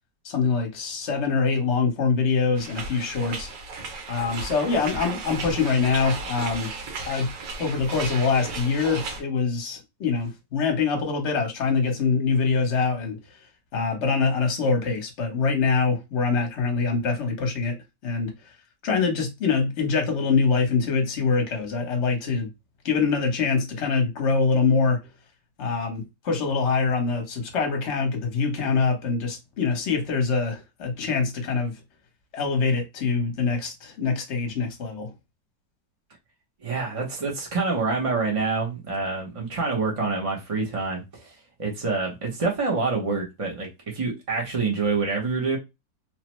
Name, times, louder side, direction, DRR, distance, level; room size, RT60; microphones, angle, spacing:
voice 1, 0.2-3.5 4.1-6.7 7.1-7.3 7.6-13.2 13.7-17.8 18.0-18.3 18.8-22.5 22.8-25.0 25.6-31.8 32.3-35.1, left 4 dB, 50° left, 1.0 m, -24 dB
sound 1, 2.6-9.2, right 4 dB, 80° right, 1.5 m, -35 dB
voice 2, 36.6-41.3 41.6-45.6, right 4 dB, 65° right, 0.3 m, -27 dB
3.1 x 2.0 x 3.0 m
omnidirectional pair, 1.8 m